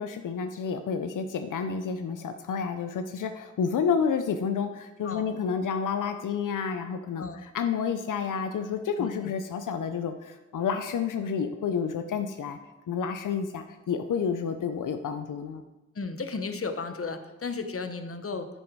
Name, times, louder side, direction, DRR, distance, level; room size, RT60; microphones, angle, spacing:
voice 1, 0.0-12.6 12.9-15.6, left 6 dB, 90° left, 8 dB, 0.5 m, -30 dB
voice 2, 15.9-18.5, left 4 dB, 45° left, 8 dB, 1.0 m, -34 dB
10.5 x 6.4 x 4.6 m, 1.1 s
cardioid pair, 55°, 30 cm